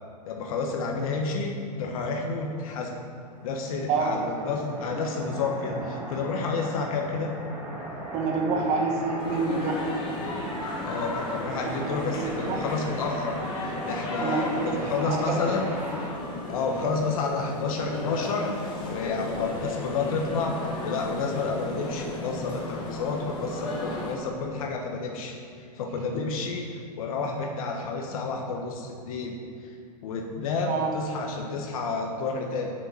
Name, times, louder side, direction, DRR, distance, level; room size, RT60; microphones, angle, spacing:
voice 1, 0.3-1.5 1.8-2.9 3.4-7.4 10.8-15.6 16.5-29.4 29.6-29.7 30.0-32.7, left 4 dB, 55° left, 2 dB, 1.3 m, -30 dB
sound 1, 3.3-16.1, equal, 10° right, 1.8 m, -38 dB
voice 2, 3.9-4.3 8.1-9.8 11.8-12.6 14.2-15.4 30.6-30.9, right 4 dB, 30° right, 1 dB, 1.4 m, -28 dB
sound 2, 9.2-24.2, left 2 dB, 20° left, 1.7 m, -35 dB
7.5 x 6.9 x 7.7 m, 2.4 s
hypercardioid pair, 150°, 21 cm